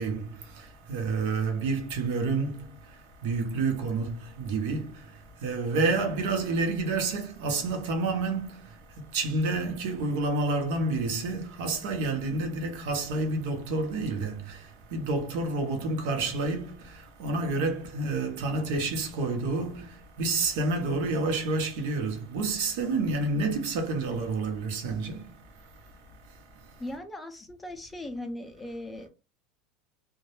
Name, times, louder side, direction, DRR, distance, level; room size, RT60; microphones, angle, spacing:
voice 1, 0.0-27.0, right 3 dB, 70° right, 0.7 m, -29 dB
voice 2, 26.8-29.1, left 1 dB, 5° left, 0.4 m, -38 dB
2.1 x 2.0 x 2.9 m
supercardioid pair, 155°, 0 cm